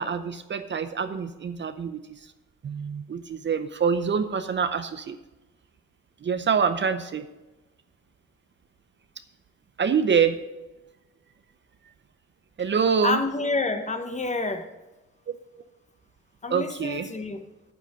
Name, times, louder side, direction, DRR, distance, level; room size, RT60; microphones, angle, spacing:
voice 1, 0.0-2.0 2.6-5.2 6.2-7.3 9.8-10.4 12.6-13.2 15.3-15.4 16.5-17.1, right 6 dB, 40° right, 10 dB, 0.7 m, -25 dB
voice 2, 13.0-14.7 16.4-17.4, left 3 dB, 25° left, 8 dB, 1.1 m, -28 dB
9.3 x 8.2 x 4.9 m, 1.1 s
cardioid pair, 90°, 30 cm